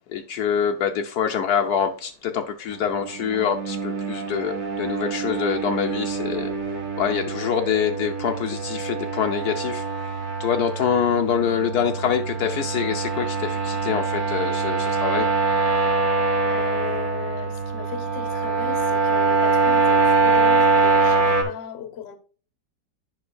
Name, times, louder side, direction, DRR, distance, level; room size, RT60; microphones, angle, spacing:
voice 1, 0.1-6.5 7.0-9.8 10.4-15.3, left 8 dB, 70° left, 1.1 m, -25 dB
sound 1, 2.7-21.4, right 3 dB, 60° right, 2.0 m, -24 dB
voice 2, 16.5-22.2, left 8 dB, 45° left, 1.0 m, -37 dB
9.4 x 5.7 x 2.3 m
omnidirectional pair, 1.8 m